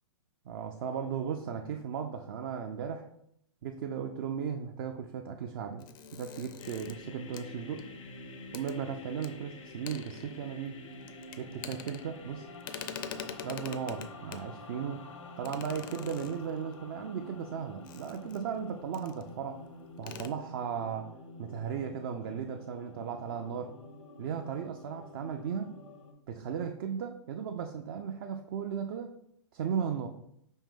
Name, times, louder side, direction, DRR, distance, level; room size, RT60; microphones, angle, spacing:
voice 1, 0.5-3.1 3.6-5.9 6.1-7.8 8.5-10.8 11.4-12.5 13.4-15.1 15.4-19.6 20.0-21.1 21.4-23.7 24.2-25.8 26.3-29.2 29.5-30.1, right 7 dB, 45° right, 4 dB, 0.4 m, -36 dB
sound 1, 5.8-8.1 8.5-8.7 9.2-9.3 9.7-10.7 11.0-12.3 12.6-14.5 15.4-16.7 17.8-18.6 18.9-19.3 19.5-19.6 20.0-20.3, left 8 dB, 45° left, 0.4 m, -44 dB
sound 2, 6.6-26.1, left 2 dB, 85° left, 0.9 m, -49 dB
5.3 x 2.7 x 3.6 m, 0.74 s
hypercardioid pair, 140°, 16 cm